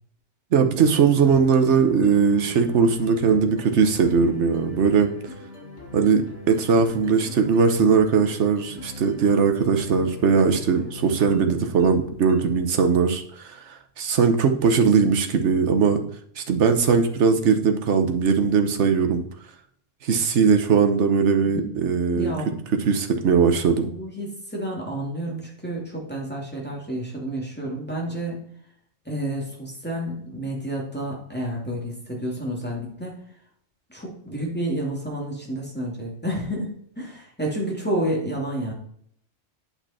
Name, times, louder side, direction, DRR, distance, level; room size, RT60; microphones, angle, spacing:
voice 1, 0.5-5.1 5.9-16.0 16.4-19.3 20.0-22.3 22.8-23.9, right 5 dB, 65° right, 6 dB, 1.3 m, -20 dB
sound 1, 0.8-12.8, left 3 dB, 60° left, 2.6 m, -41 dB
voice 2, 22.1-22.6 23.8-28.4 29.0-33.2 33.9-38.7, right 1 dB, 10° left, -3 dB, 2.6 m, -30 dB
9.0 x 5.5 x 4.3 m, 0.65 s
omnidirectional pair, 1.3 m